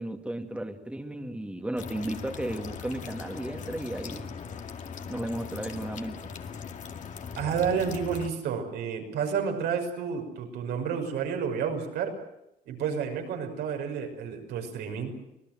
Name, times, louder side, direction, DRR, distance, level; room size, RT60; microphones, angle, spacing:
voice 1, 0.0-4.4 5.1-6.3, right 1 dB, 5° right, 6 dB, 2.2 m, -34 dB
sound 1, 1.8-8.3, left 6 dB, 45° left, 2.2 m, -40 dB
voice 2, 7.4-12.1 12.7-15.1, right 7 dB, 80° right, 4 dB, 6.2 m, -30 dB
25.5 x 19.5 x 7.7 m, 0.84 s
cardioid pair, 110°, 17 cm